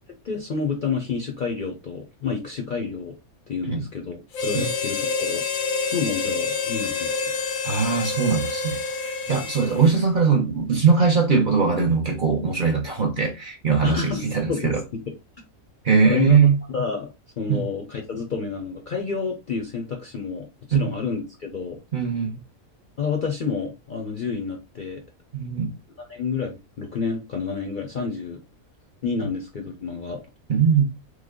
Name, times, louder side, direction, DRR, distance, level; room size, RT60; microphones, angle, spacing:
voice 1, 0.2-3.2 3.5-5.4 5.9-7.2 9.3-9.5 13.8-15.0 16.0-16.4 16.7-21.8 23.0-25.0 26.0-28.4 29.0-30.2, left 5 dB, 50° left, 0.6 m, -29 dB
Harmonica, 4.3-10.0, left 4 dB, 85° left, 1.0 m, -27 dB
voice 2, 7.6-14.8 15.8-16.6 17.5-17.6 20.7-20.9 21.9-22.4 25.3-25.7 30.5-30.9, right 5 dB, 50° right, 0.7 m, -21 dB
3.2 x 2.2 x 3.6 m
omnidirectional pair, 1.4 m